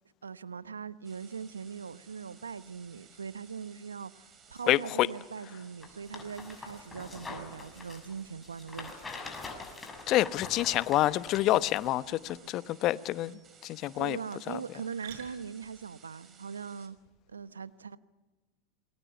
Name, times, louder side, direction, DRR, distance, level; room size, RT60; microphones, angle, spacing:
voice 1, 0.2-9.0 13.9-17.0 17.3-18.0, right 6 dB, 85° right, 0.9 m, -41 dB
sound 1, 1.0-16.9, right 6 dB, 30° right, 5.3 m, -58 dB
sound 2, 2.4-17.4, right 9 dB, 65° right, 6.5 m, -59 dB
voice 2, 4.7-5.1 10.1-14.2 14.5-14.6, left 15 dB, 45° left, 1.0 m, -28 dB
sound 3, 5.8-11.9 12.3-12.4, left 3 dB, 15° left, 6.8 m, -44 dB
27.5 x 22.0 x 7.1 m
hypercardioid pair, 85°, 0 cm